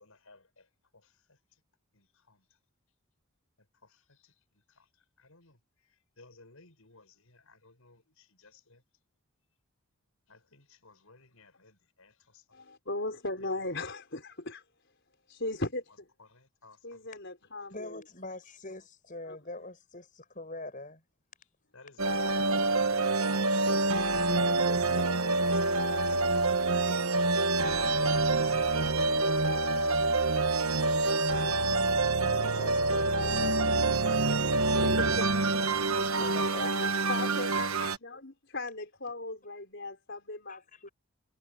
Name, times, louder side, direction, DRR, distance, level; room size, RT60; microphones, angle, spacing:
voice 1, 0.0-1.6 1.9-2.5 3.8-4.4 4.7-8.8 10.3-12.5 16.2-17.1 21.4-21.5 21.7-23.9 26.3-27.4 27.8-31.5 32.2-32.7 35.1-35.2 35.5-35.8 36.6-36.9 37.4-38.0, left 3 dB, 80° left, 5.5 m, -58 dB
voice 2, 12.5-14.6 15.3-16.1 16.8-18.0 19.2-19.4 34.8-35.3 37.1-40.9, left 2 dB, 55° left, 5.6 m, -37 dB
voice 3, 17.7-21.0 24.2-25.7 32.2-34.3 36.0-37.5 40.5-40.9, left 2 dB, 40° left, 7.0 m, -44 dB
sound 1, 22.0-38.0, right 3 dB, 85° right, 1.3 m, -27 dB
head